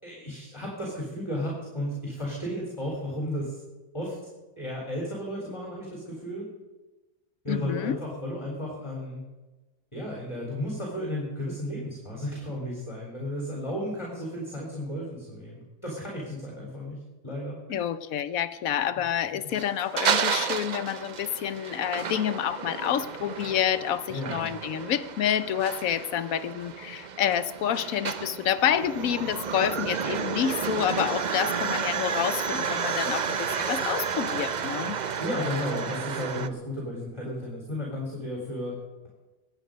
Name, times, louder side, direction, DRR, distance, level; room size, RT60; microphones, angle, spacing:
voice 1, 0.0-3.6 3.9-4.3 4.6-6.5 7.4-9.2 9.9-17.0 17.2-17.8 24.1-24.5 35.2-38.8, left 1 dB, 20° left, -3 dB, 3.7 m, -34 dB
voice 2, 7.5-8.0 17.7-35.0, left 10 dB, 70° left, 14 dB, 1.1 m, -28 dB
sound 1, 19.5-36.5, right 6 dB, 50° right, 0.5 m, -31 dB
23.5 x 8.9 x 5.2 m, 1.2 s
omnidirectional pair, 1.6 m